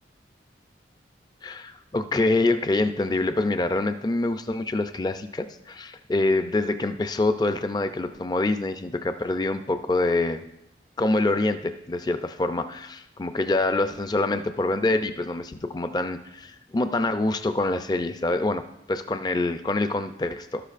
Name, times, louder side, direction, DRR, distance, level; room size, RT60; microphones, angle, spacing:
voice 1, 1.4-10.4 11.0-18.6 18.9-20.6, left 2 dB, 25° left, 9 dB, 0.4 m, -25 dB
13.0 x 11.5 x 2.5 m, 0.90 s
head